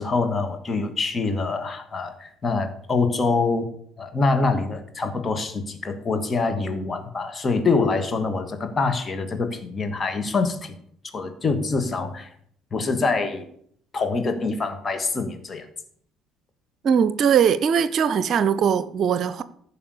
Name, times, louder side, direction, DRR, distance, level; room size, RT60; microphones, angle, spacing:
voice 1, 0.0-3.7 4.0-10.8 11.1-12.3 12.7-13.5 13.9-15.7, left 4 dB, 35° left, 2.2 m, -25 dB
voice 2, 16.8-19.4, right 7 dB, 50° right, 0.7 m, -20 dB
15.0 x 5.6 x 6.8 m
figure-of-eight pair, 50°, 0 cm